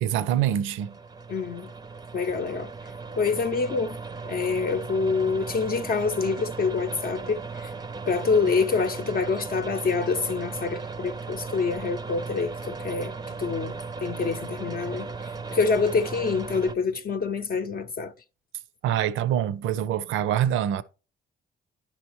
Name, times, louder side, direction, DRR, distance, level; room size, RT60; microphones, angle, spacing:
voice 1, 0.0-1.0 18.8-20.8, right 10 dB, 85° right, 0.6 m, -25 dB
sound 1, 0.8-16.8, right 4 dB, 20° right, 0.5 m, -36 dB
voice 2, 1.3-1.7 2.1-2.7 3.2-4.0 4.3-7.7 8.1-13.8 14.0-15.1 15.5-18.1, left 4 dB, 50° left, 0.6 m, -26 dB
10.5 x 5.7 x 3.0 m
cardioid pair, 90°, 20 cm